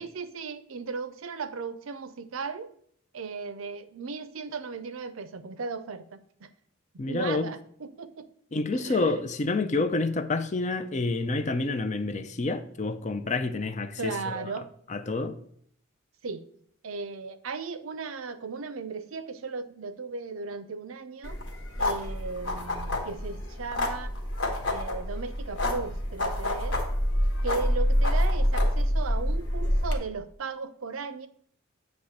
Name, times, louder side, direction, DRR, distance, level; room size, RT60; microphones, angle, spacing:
voice 1, 0.0-2.7 3.1-6.5 7.1-8.3 8.7-9.2 14.0-14.7 16.2-16.4 16.8-21.4 21.8-24.1 24.6-26.8 27.4-31.3, right 4 dB, 75° right, 0.5 m, -36 dB
voice 2, 7.0-7.5 8.5-14.5 14.9-15.4, left 3 dB, 35° left, 0.5 m, -28 dB
sound 1, 21.2-30.0, left 1 dB, 55° left, 1.2 m, -27 dB
8.2 x 3.1 x 6.4 m
head